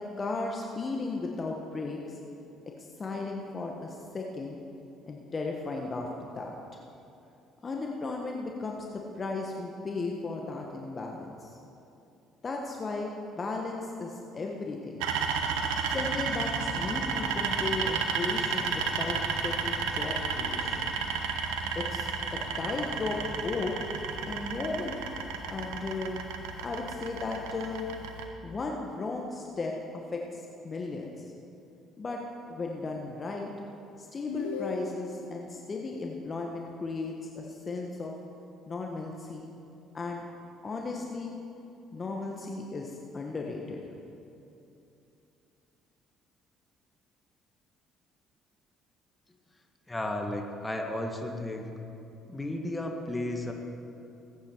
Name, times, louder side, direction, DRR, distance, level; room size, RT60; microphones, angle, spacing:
voice 1, 0.2-2.2 2.8-4.6 5.1-6.1 6.3-6.5 7.6-11.5 12.4-13.1 13.4-15.1 15.9-20.9 21.7-23.7 24.2-25.1 25.5-26.2 26.6-27.9 28.4-31.1 32.0-32.2 32.5-33.5 34.0-38.1 38.7-39.5 39.9-40.2 40.6-41.3 41.9-43.9, left 3 dB, 35° left, 0 dB, 1.4 m, -35 dB
sound 1, 15.0-28.2, right 5 dB, 75° right, 1.0 m, -32 dB
sound 2, 34.3-35.3, left 5 dB, 85° left, 0.8 m, -36 dB
voice 2, 49.9-51.7 52.3-53.5, left 1 dB, 15° left, 2 dB, 1.9 m, -33 dB
20.0 x 9.0 x 4.7 m, 2.8 s
hypercardioid pair, 55°, 0 cm